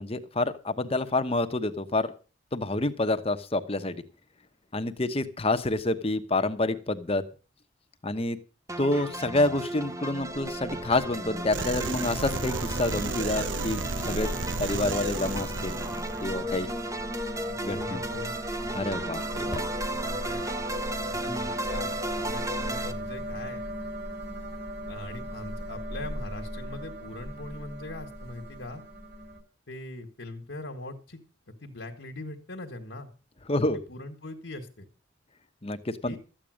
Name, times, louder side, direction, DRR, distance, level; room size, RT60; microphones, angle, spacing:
voice 1, 0.0-2.1 2.5-4.0 4.7-7.2 8.0-8.4 8.8-14.3 14.6-15.8 16.2-16.7 17.6-18.0 18.7-19.6 33.5-33.8 35.6-36.2, left 2 dB, 30° left, 9 dB, 1.1 m, -28 dB
sound 1, 8.7-22.9, right 1 dB, 15° right, 0.9 m, -35 dB
sound 2, 10.2-29.4, equal, 60° right, 4.9 m, -38 dB
sound 3, 11.5-16.4, right 3 dB, 75° right, 0.9 m, -33 dB
voice 2, 17.7-18.3 20.0-20.6 21.1-23.6 24.9-28.8 29.7-31.2 31.6-33.1 33.7-34.9 36.0-36.2, left 2 dB, 75° left, 1 dB, 1.7 m, -41 dB
13.5 x 8.8 x 6.4 m, 0.35 s
head